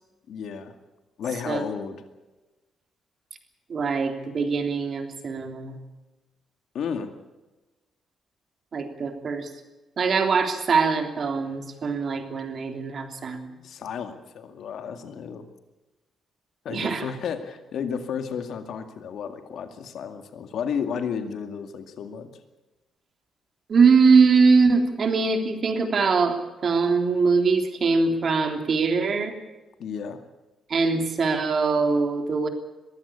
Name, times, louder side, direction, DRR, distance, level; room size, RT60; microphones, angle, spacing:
voice 1, 0.3-0.7 1.2-2.0 6.7-7.1 13.6-15.4 16.6-22.3 29.8-30.2, left 7 dB, 70° left, 8 dB, 2.2 m, -32 dB
voice 2, 3.7-5.8 8.7-9.5 10.0-13.5 16.7-17.1 23.7-29.3 30.7-32.5, right 4 dB, 45° right, 6 dB, 3.2 m, -22 dB
22.5 x 15.5 x 8.5 m, 1.1 s
cardioid pair, 130°, 0 cm